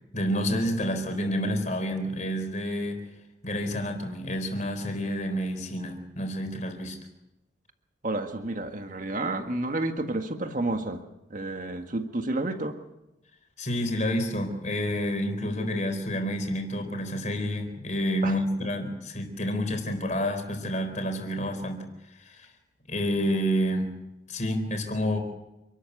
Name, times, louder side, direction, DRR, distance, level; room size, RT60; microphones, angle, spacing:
voice 1, 0.1-3.0 3.4-7.0 13.6-21.8 22.1-22.5 22.9-24.0 24.3-25.2, equal, 40° left, 6 dB, 4.2 m, -29 dB
voice 2, 8.0-11.0 11.3-12.8 18.2-18.3, right 2 dB, 45° right, 6 dB, 1.7 m, -30 dB
28.0 x 13.0 x 8.4 m, 0.95 s
head